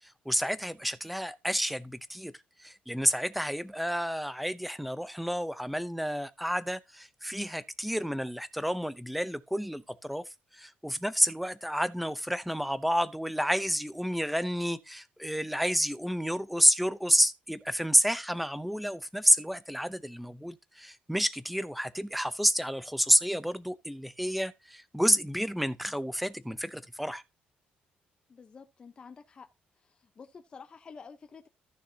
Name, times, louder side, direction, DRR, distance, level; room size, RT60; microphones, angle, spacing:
voice 1, 0.3-2.3 2.6-10.2 10.5-27.2, equal, ahead, 0.7 m, -29 dB
voice 2, 28.3-29.5 29.8-31.5, left 5 dB, 30° left, 0.9 m, -50 dB
14.0 x 6.6 x 2.8 m
cardioid pair, 140°, 3 cm